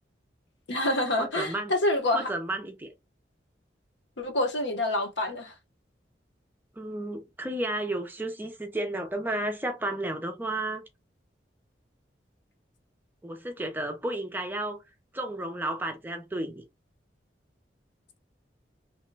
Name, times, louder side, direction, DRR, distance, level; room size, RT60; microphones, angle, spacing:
voice 1, 0.7-2.3 4.2-5.5, left 1 dB, 85° left, 0.9 m, -27 dB
voice 2, 1.2-1.7 2.1-2.9 6.8-10.8 13.2-14.8 15.1-16.6, right 1 dB, 10° right, 0.4 m, -32 dB
2.9 x 2.1 x 3.2 m
head